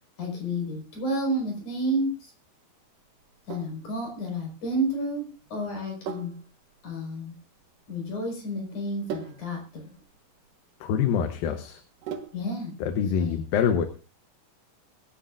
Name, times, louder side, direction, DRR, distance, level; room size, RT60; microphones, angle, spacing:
voice 1, 0.2-2.3 3.5-6.3 6.8-7.4 7.9-9.9 12.3-12.7 13.1-13.4, equal, 55° left, 1 dB, 6.4 m, -31 dB
Sink (filling or washing), 3.2-12.6, right 7 dB, 70° right, 2.9 m, -42 dB
voice 2, 10.8-11.8 12.8-13.9, left 7 dB, 75° left, 7 dB, 2.7 m, -25 dB
23.0 x 11.5 x 2.5 m, 0.33 s
omnidirectional pair, 4.4 m